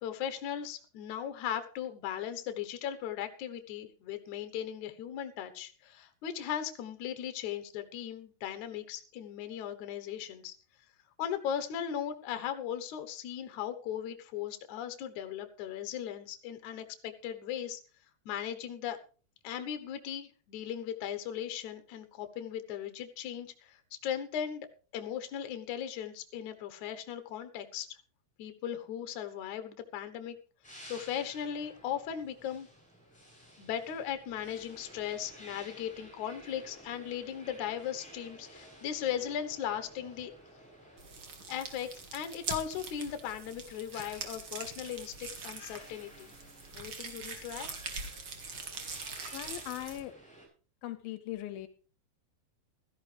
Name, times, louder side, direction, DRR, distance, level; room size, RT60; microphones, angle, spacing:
voice 1, 0.0-10.6 11.2-17.8 18.3-19.0 19.4-24.7 24.9-28.0 28.4-30.4 30.9-32.7 33.6-40.7 41.5-46.3 46.7-47.7, left 9 dB, 65° left, 8 dB, 2.4 m, -38 dB
sound 1, 30.6-50.5, right 1 dB, ahead, 7.5 m, -54 dB
sound 2, 41.0-50.0, right 4 dB, 40° right, 2.3 m, -43 dB
voice 2, 49.3-50.1 50.8-51.7, left 14 dB, 80° left, 10 dB, 2.6 m, -39 dB
16.0 x 14.0 x 3.4 m, 0.38 s
omnidirectional pair, 4.2 m